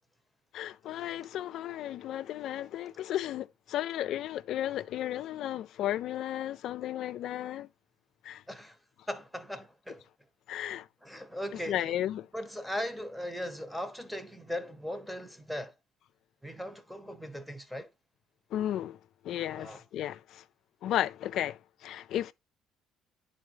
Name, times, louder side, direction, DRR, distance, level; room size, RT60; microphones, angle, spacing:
voice 1, 0.5-7.7 8.2-8.4 10.5-10.9 11.7-12.3 18.5-19.0 19.2-20.4 20.8-22.3, left 12 dB, 65° left, 0.3 m, -34 dB
voice 2, 8.5-8.8 9.1-10.0 11.0-12.0 12.3-15.7 16.4-17.9 19.6-19.8, equal, ahead, 1.0 m, -38 dB
9.9 x 4.0 x 3.0 m
supercardioid pair, 90°, 0 cm